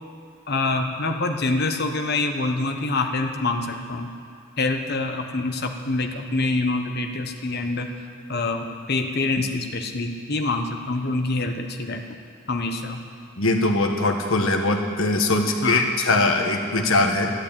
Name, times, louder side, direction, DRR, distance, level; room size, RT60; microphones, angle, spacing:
voice 1, 0.5-4.1 4.6-7.9 8.3-12.0 12.5-13.0 15.6-15.9, left 2 dB, 45° left, 4 dB, 1.2 m, -26 dB
voice 2, 13.4-17.3, left 2 dB, 65° left, 3 dB, 1.5 m, -21 dB
12.5 x 11.5 x 8.9 m, 2.2 s
head